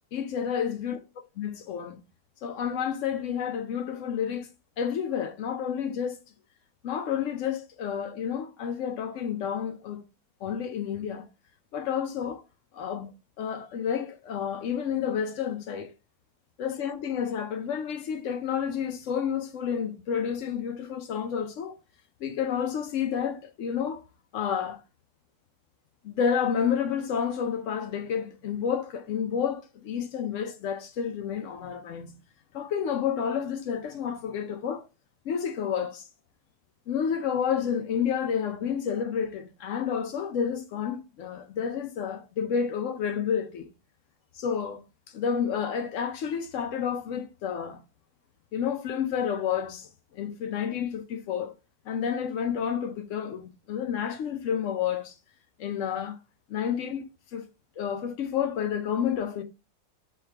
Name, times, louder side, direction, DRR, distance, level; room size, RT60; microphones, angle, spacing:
voice 1, 0.1-1.0 1.4-2.0 2.4-4.5 4.8-6.2 6.8-10.0 10.4-11.3 11.7-12.4 12.7-15.9 16.6-21.8 22.2-24.0 24.3-24.8 26.0-32.2 32.5-34.9 35.3-36.1 36.9-43.7 44.3-47.8 48.5-51.5 51.9-55.2 55.6-56.2 56.5-57.5 57.8-59.4, left 7 dB, 85° left, 0.6 m, -30 dB
3.6 x 3.2 x 4.3 m
omnidirectional pair, 1.9 m